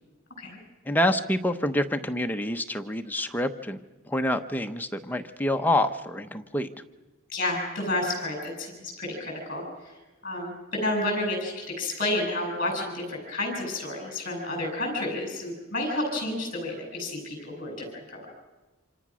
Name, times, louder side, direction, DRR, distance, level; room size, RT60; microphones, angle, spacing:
voice 1, 0.9-6.7, left 1 dB, 10° left, 6 dB, 0.9 m, -27 dB
voice 2, 7.3-10.0 10.2-18.3, left 1 dB, 45° left, 2 dB, 7.8 m, -30 dB
27.0 x 26.5 x 6.3 m, 1.2 s
head